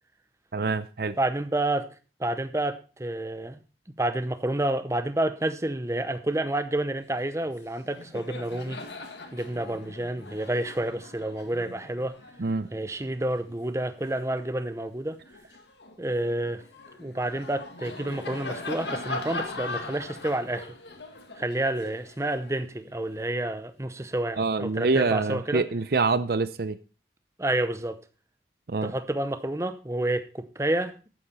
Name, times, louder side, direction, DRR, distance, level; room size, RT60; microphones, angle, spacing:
voice 1, 0.5-1.2 12.4-12.7 24.4-26.8 28.7-28.9, right 3 dB, 60° right, 14 dB, 0.6 m, -26 dB
voice 2, 1.2-1.9 2.2-3.6 4.0-8.8 9.3-12.2 12.7-15.2 16.0-16.6 17.0-20.7 21.4-25.6 27.4-28.0 28.8-31.1, right 1 dB, 15° right, 11 dB, 0.7 m, -29 dB
Laughter, 7.4-7.6 7.8-14.6 15.1-23.2, left 2 dB, 85° left, 2.0 m, -40 dB
11.5 x 9.0 x 4.2 m, 0.35 s
head